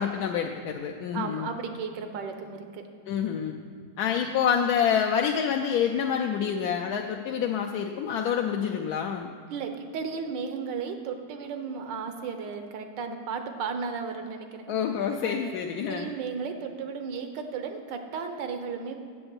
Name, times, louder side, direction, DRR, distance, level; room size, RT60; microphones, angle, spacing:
voice 1, 0.0-1.5 3.1-3.6 4.0-9.3 14.7-16.1, left 8 dB, 70° left, 2 dB, 1.0 m, -27 dB
voice 2, 1.1-2.8 9.5-14.6 15.2-15.6 15.9-19.0, right 5 dB, 85° right, 6 dB, 1.5 m, -34 dB
7.9 x 6.9 x 6.9 m, 2.3 s
omnidirectional pair, 1.9 m